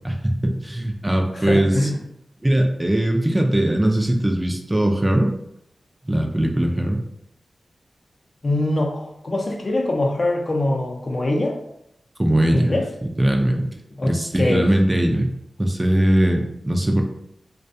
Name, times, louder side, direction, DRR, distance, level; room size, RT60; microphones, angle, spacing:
voice 1, 0.0-1.9 2.4-5.3 6.1-7.0 12.2-12.8 13.0-13.8 14.0-15.3 15.6-17.0, right 1 dB, 20° right, 2 dB, 0.4 m, -20 dB
voice 2, 1.3-2.0 8.4-11.6 12.5-12.8 14.0-14.7, left 1 dB, 50° left, 0 dB, 0.5 m, -23 dB
2.3 x 2.2 x 2.6 m, 0.78 s
cardioid pair, 50°, 0 cm